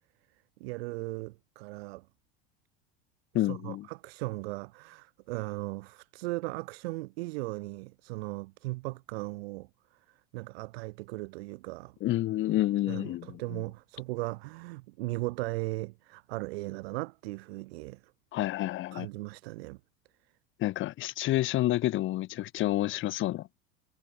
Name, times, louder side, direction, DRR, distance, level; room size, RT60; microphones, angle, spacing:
voice 1, 0.6-2.1 3.3-9.7 10.1-11.9 12.9-18.0 18.9-19.8, right 22 dB, 70° right, 1.5 m, -37 dB
voice 2, 3.3-3.9 12.0-13.6 18.3-19.1 20.6-23.5, left 15 dB, 40° left, 0.8 m, -29 dB
hypercardioid pair, 95°, 31 cm